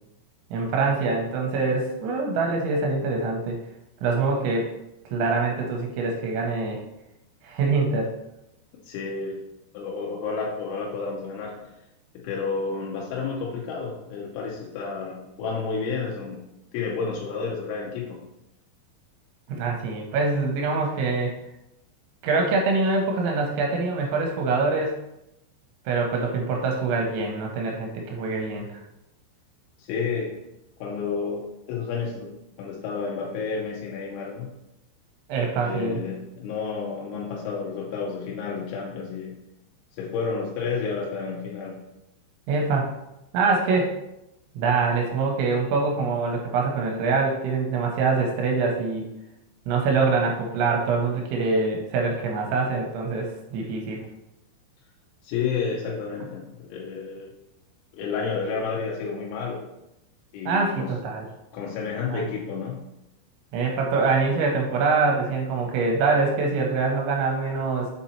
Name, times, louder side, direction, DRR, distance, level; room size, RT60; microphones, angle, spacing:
voice 1, 0.5-3.6 4.0-4.7 5.1-6.8 7.4-8.1 19.5-21.3 22.2-25.0 25.9-28.8 35.3-36.0 42.5-42.9 43.3-43.9 44.6-49.1 49.7-54.0 60.5-61.3 62.1-62.2 63.5-67.9, right 4 dB, 85° right, 0 dB, 3.1 m, -24 dB
voice 2, 8.9-9.4 9.7-11.6 12.1-16.4 16.7-18.2 29.8-30.3 30.8-32.3 32.6-34.5 35.6-39.4 39.9-41.8 55.2-57.3 57.9-59.6 60.3-60.9 61.5-62.8, left 5 dB, 90° left, -3 dB, 3.2 m, -30 dB
7.2 x 4.2 x 4.3 m, 0.90 s
omnidirectional pair, 5.4 m